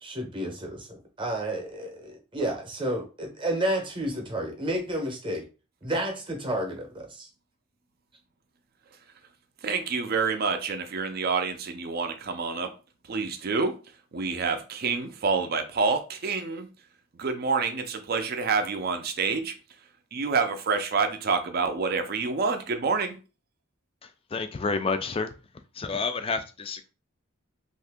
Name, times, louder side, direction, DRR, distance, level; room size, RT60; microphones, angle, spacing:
voice 1, 0.0-5.4 5.8-7.3, right 1 dB, 25° right, 0.8 m, -31 dB
voice 2, 9.6-12.7 13.1-13.7 14.1-16.7 17.2-19.5 20.1-23.2, right 4 dB, 45° right, 0.5 m, -27 dB
voice 3, 24.3-25.3 25.8-26.9, left 4 dB, 25° left, 0.3 m, -29 dB
2.8 x 2.5 x 3.5 m
head